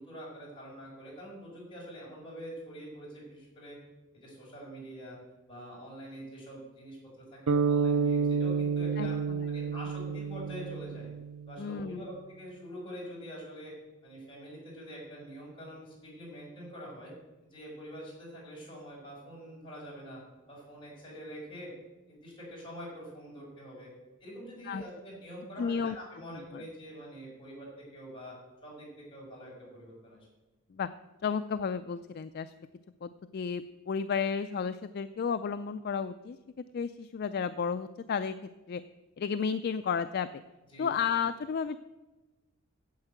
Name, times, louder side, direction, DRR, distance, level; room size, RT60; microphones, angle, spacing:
voice 1, 0.0-3.8 4.1-5.2 5.5-9.1 9.5-11.1 11.5-13.7 14.0-17.1 17.4-20.2 20.5-21.7 22.1-23.9 24.2-28.3 28.6-30.3 40.7-40.9, equal, 25° left, -5 dB, 5.3 m, -45 dB
sound 1, 7.5-11.7, right 5 dB, 80° right, 0.5 m, -29 dB
voice 2, 9.0-9.5 11.6-12.1 24.7-24.8 25.6-26.0 26.3-26.6 30.7-30.9 31.2-32.5 33.0-36.4 36.7-38.4 38.7-38.8 39.2-40.4 40.8-41.8, left 6 dB, 45° left, 11 dB, 0.3 m, -32 dB
9.4 x 8.1 x 7.9 m, 1.1 s
head